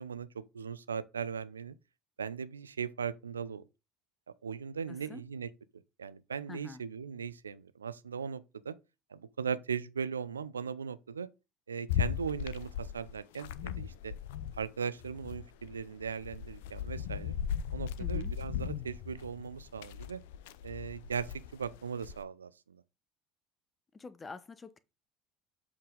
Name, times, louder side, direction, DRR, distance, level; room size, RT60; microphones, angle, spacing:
voice 1, 0.0-1.7 2.2-3.7 4.4-5.5 6.0-8.7 9.1-11.3 11.7-14.1 14.6-17.3 17.7-20.2 20.6-22.8, right 6 dB, 85° right, 0.5 m, -38 dB
voice 2, 4.9-5.2 6.5-6.8 18.0-18.3 23.9-24.8, left 4 dB, 25° left, 1.0 m, -46 dB
sound 1, 11.9-14.7 15.0-22.2, left 9 dB, 70° left, 0.6 m, -38 dB
7.7 x 5.6 x 3.8 m
hypercardioid pair, 65°, 0 cm